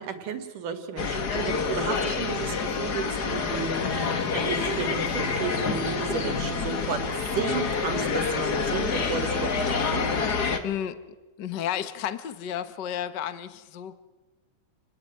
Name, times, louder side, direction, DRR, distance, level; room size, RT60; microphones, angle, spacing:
voice 1, 0.0-7.0 7.3-10.1, right 6 dB, 85° right, 7 dB, 3.9 m, -33 dB
sound 1, 1.0-10.6, left 5 dB, 40° left, 1.8 m, -27 dB
voice 2, 10.6-11.0 11.4-13.9, left 10 dB, 65° left, 12 dB, 1.0 m, -32 dB
29.5 x 19.5 x 9.3 m, 1.1 s
omnidirectional pair, 3.6 m